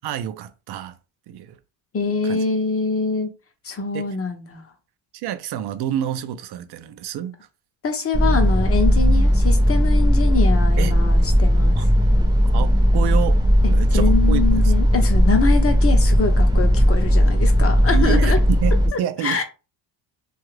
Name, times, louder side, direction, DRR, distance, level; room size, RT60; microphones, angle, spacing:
voice 1, 0.0-1.0 1.3-1.6 2.2-2.4 3.9-4.1 5.1-7.4 10.8-11.0 11.7-11.9 12.5-13.4 13.7-14.7 17.9-19.4, right 10 dB, 60° right, 0.5 m, -28 dB
voice 2, 1.9-3.3 3.6-4.6 7.8-11.9 13.9-18.4 18.9-19.4, left 4 dB, 30° left, 0.7 m, -24 dB
sound 1, 8.1-18.9, equal, 10° right, 0.7 m, -16 dB
2.8 x 2.3 x 3.2 m
cardioid pair, 110°, 47 cm